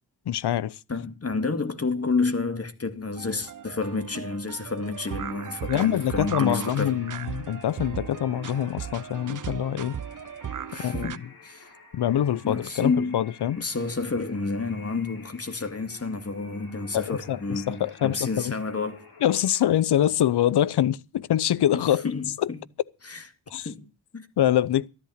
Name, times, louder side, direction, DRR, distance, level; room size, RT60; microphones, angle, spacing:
voice 1, 0.3-0.8 5.7-10.0 10.8-11.2 11.9-13.6 16.9-18.5 19.2-22.1 22.4-22.5 23.5-23.7 24.4-24.9, left 11 dB, 80° left, 0.8 m, -24 dB
voice 2, 0.9-6.9 10.7-11.7 12.4-13.2 13.6-19.0 21.7-22.6 23.0-23.2 23.6-24.3, left 3 dB, 35° left, 2.2 m, -30 dB
sound 1, 3.2-11.2, right 8 dB, 50° right, 0.8 m, -37 dB
sound 2, 4.9-19.7, left 3 dB, 65° left, 6.4 m, -51 dB
13.5 x 11.5 x 6.5 m
cardioid pair, 55°, 39 cm